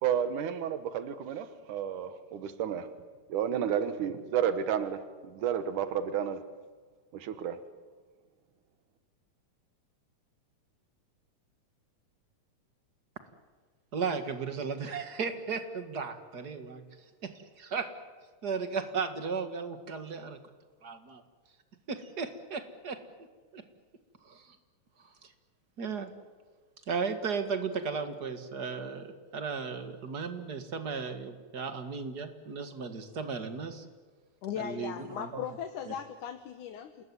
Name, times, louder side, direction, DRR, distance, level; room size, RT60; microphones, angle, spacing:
voice 1, 0.0-2.9 3.3-6.4 7.1-7.6, right 9 dB, 85° right, 10 dB, 2.8 m, -31 dB
voice 2, 13.9-16.8 17.2-17.9 18.4-20.4 20.8-21.2 21.9-23.0 23.5-23.6 24.3-24.4 25.8-26.1 26.9-33.8 34.6-35.4 35.9-36.0, right 5 dB, 35° right, 8 dB, 2.0 m, -35 dB
voice 3, 34.4-37.0, left 9 dB, 80° left, 7 dB, 2.8 m, -38 dB
28.5 x 20.0 x 9.7 m, 1.5 s
omnidirectional pair, 3.5 m